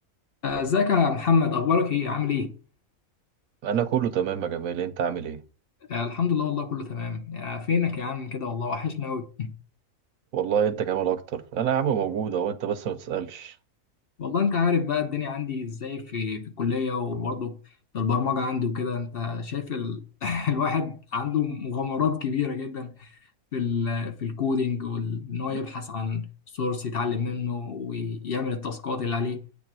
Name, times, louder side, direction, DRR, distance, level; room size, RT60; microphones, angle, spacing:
voice 1, 0.4-2.5 5.9-9.5 14.2-17.6 17.9-23.1 23.5-26.3 26.5-29.4, left 5 dB, 50° left, 0.9 m, -27 dB
voice 2, 3.6-5.4 10.3-13.6 25.5-25.6, right 8 dB, 75° right, 1.1 m, -27 dB
8.3 x 3.4 x 6.1 m
omnidirectional pair, 1.5 m